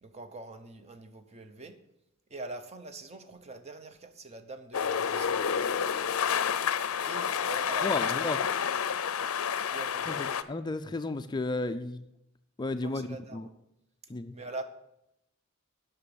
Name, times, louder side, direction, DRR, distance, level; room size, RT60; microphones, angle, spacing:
voice 1, 0.0-1.8 2.3-5.8 7.1-8.3 9.7-10.3 12.8-13.5 14.3-14.6, right 3 dB, 30° right, 8 dB, 0.8 m, -44 dB
sound 1, 4.7-10.4, left 7 dB, 75° left, 0.5 m, -29 dB
voice 2, 7.8-8.4 10.1-12.0 12.6-13.5 14.1-14.3, left 2 dB, 20° left, 9 dB, 0.3 m, -33 dB
8.5 x 6.0 x 7.8 m, 0.84 s
head